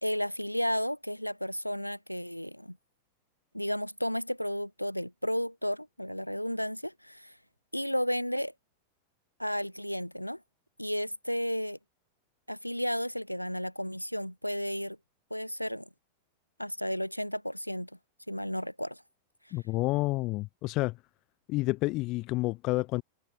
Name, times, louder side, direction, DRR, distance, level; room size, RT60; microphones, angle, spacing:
voice 1, 0.0-2.8 3.5-7.4 7.7-8.5 9.4-10.4 10.8-11.8 12.5-15.0 15.3-15.9 16.6-17.9 18.3-19.0, equal, 90° left, 4.6 m, -33 dB
voice 2, 19.5-21.0 21.5-23.0, left 21 dB, 40° left, 4.2 m, -29 dB
figure-of-eight pair, 90°, 0 cm